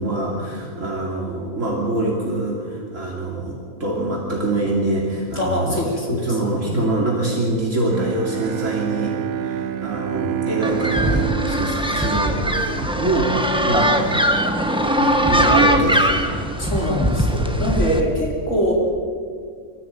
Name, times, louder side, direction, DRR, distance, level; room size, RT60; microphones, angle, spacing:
voice 1, 0.0-5.8 6.1-14.0 14.8-16.3, right 2 dB, 60° right, -3 dB, 3.3 m, -24 dB
voice 2, 5.4-6.4 6.6-6.9 15.0-15.2 16.6-18.7, equal, 55° left, -2 dB, 4.8 m, -24 dB
Bowed string instrument, 7.9-13.2, right 10 dB, 80° right, 1.3 m, -28 dB
sound 1, 10.6-18.0, right 1 dB, 5° right, 1.3 m, -20 dB
23.5 x 14.5 x 9.2 m, 2.1 s
omnidirectional pair, 1.5 m